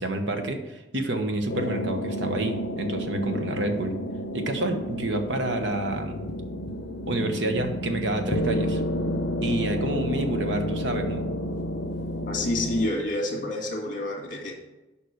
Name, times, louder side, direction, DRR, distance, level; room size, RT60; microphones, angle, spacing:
voice 1, 0.0-4.0 4.3-6.2 7.1-8.8 9.4-11.3, right 1 dB, 70° right, 6 dB, 1.1 m, -28 dB
sound 1, 1.5-12.9, equal, 65° left, 0.7 m, -31 dB
voice 2, 12.3-14.5, left 1 dB, 45° left, 1 dB, 1.8 m, -28 dB
6.9 x 5.3 x 6.4 m, 1.0 s
head